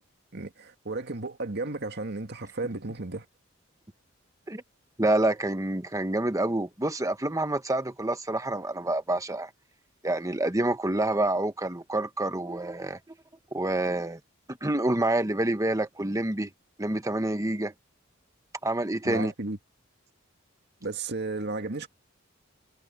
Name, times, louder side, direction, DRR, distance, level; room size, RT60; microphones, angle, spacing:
voice 1, 0.3-3.3 19.0-19.6 20.8-21.9, right 3 dB, 55° right, 2.0 m, -33 dB
voice 2, 5.0-9.5 10.0-13.0 13.5-14.2 14.5-16.5 16.8-17.7 18.6-19.3, right 1 dB, 15° right, 1.3 m, -27 dB
head